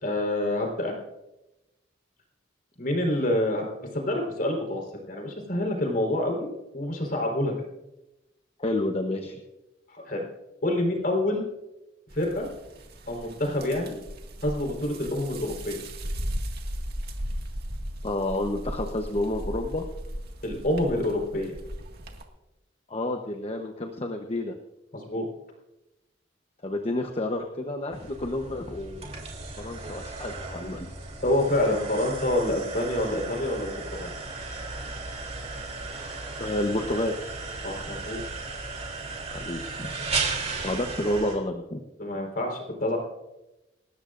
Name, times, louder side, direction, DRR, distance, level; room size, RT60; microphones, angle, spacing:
voice 1, 0.0-1.0 2.8-3.6 3.9-7.5 9.9-10.2 10.6-11.4 12.1-12.5 13.1-14.0 14.4-15.8 20.4-21.5 24.9-25.2 31.2-34.1 37.6-38.2 40.5-40.7 42.0-43.0, left 1 dB, 50° left, 1 dB, 4.2 m, -27 dB
voice 2, 8.6-9.4 18.0-19.8 22.9-24.5 26.6-29.1 29.6-30.9 36.4-37.1 39.3-39.9 40.6-41.8, left 1 dB, 35° left, 4 dB, 1.0 m, -30 dB
sound 1, 12.1-22.2, equal, 60° right, 2.0 m, -36 dB
sound 2, 27.9-41.4, right 3 dB, 35° right, 3.3 m, -35 dB
28.5 x 13.5 x 2.6 m, 0.98 s
head